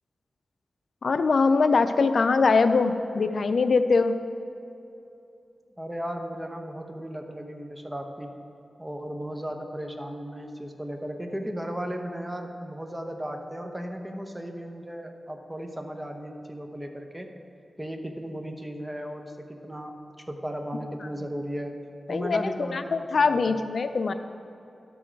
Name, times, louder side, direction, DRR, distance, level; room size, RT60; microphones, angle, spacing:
voice 1, 1.0-4.1 22.1-24.1, left 4 dB, 70° left, 10 dB, 0.5 m, -22 dB
voice 2, 5.8-8.3 8.8-17.3 17.8-21.8 22.1-23.6, equal, 10° right, 4 dB, 0.9 m, -36 dB
12.0 x 6.2 x 4.5 m, 2.7 s
wide cardioid pair, 75°, 0 cm